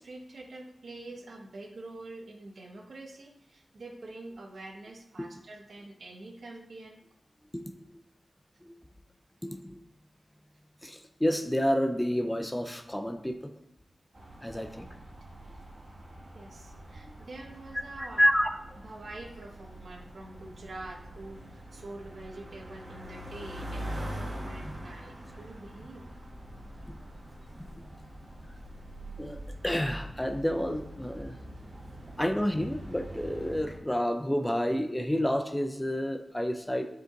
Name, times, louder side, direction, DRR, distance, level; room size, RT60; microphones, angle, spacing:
voice 1, 0.0-7.0 16.3-18.2 18.8-26.0, right 2 dB, 65° right, 2 dB, 1.1 m, -46 dB
voice 2, 9.4-9.8 10.8-13.4 14.4-14.9 17.0-17.1 18.0-18.5 29.2-29.4 29.6-31.4 32.2-36.8, equal, 10° left, 6 dB, 0.5 m, -29 dB
sound 1, 14.1-33.8, equal, 40° right, 1.5 m, -44 dB
7.2 x 5.2 x 3.9 m, 0.77 s
wide cardioid pair, 115°, 0 cm